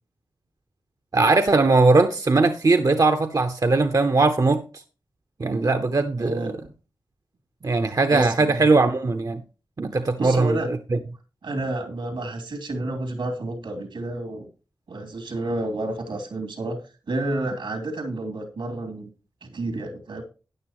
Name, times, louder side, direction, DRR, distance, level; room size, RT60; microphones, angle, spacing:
voice 1, 1.1-4.6 5.4-6.5 7.6-9.4 9.8-10.6 10.9-11.0, right 3 dB, 45° right, 0.9 m, -20 dB
voice 2, 6.2-6.6 8.1-8.7 9.9-10.7 11.4-14.5 14.9-16.8 17.1-19.1 19.4-20.2, right 2 dB, 80° right, 2.9 m, -30 dB
13.5 x 9.5 x 3.0 m
cardioid pair, 40°, 8 cm